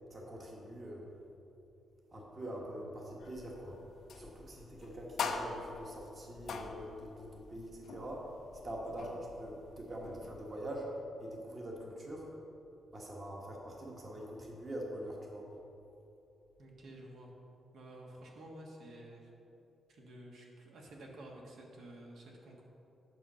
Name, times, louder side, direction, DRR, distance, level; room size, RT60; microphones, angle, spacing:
voice 1, 0.1-1.1 2.1-3.7 4.1-8.3 8.6-10.9 11.2-12.3 12.9-15.4, right 1 dB, 25° right, -2 dB, 1.3 m, -44 dB
sound 1, 3.2-10.6, left 5 dB, 60° left, 0.6 m, -44 dB
voice 2, 16.6-17.3 17.7-19.3 19.9-22.7, right 1 dB, 60° right, -1 dB, 1.5 m, -51 dB
9.3 x 6.4 x 5.6 m, 2.8 s
wide cardioid pair, 180°, 0 cm